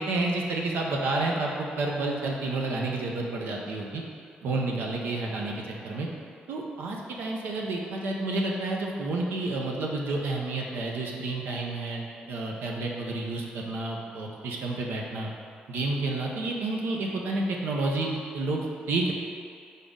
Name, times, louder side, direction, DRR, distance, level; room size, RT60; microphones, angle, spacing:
voice 1, 0.0-4.0 4.4-6.1 6.5-15.3 15.7-19.1, right 2 dB, 80° right, -1 dB, 0.6 m, -30 dB
4.0 x 3.7 x 3.6 m, 2.3 s
supercardioid pair, 60°, 4 cm